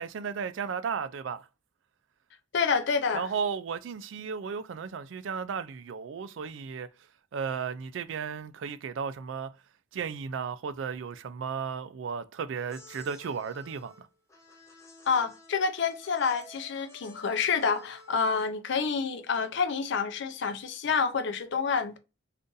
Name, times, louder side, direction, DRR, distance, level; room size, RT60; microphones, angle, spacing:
voice 1, 0.0-1.5 3.1-6.9 7.3-9.5 9.9-14.1, right 6 dB, 70° right, 0.4 m, -34 dB
voice 2, 2.5-3.3 15.1-22.0, left 5 dB, 65° left, 0.5 m, -28 dB
sound 1, 12.5-18.4, left 1 dB, 15° left, 0.8 m, -52 dB
2.5 x 2.5 x 3.8 m
head